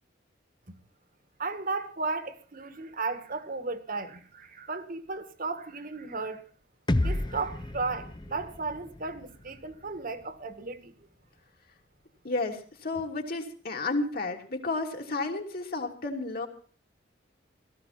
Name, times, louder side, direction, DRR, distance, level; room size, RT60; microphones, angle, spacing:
voice 1, 1.4-6.4 7.0-10.9, right 3 dB, 50° right, 1.8 m, -35 dB
sound 1, 6.9-10.8, left 1 dB, 25° left, 0.7 m, -33 dB
voice 2, 12.2-16.5, left 3 dB, 55° left, 3.0 m, -32 dB
17.5 x 15.0 x 4.3 m
head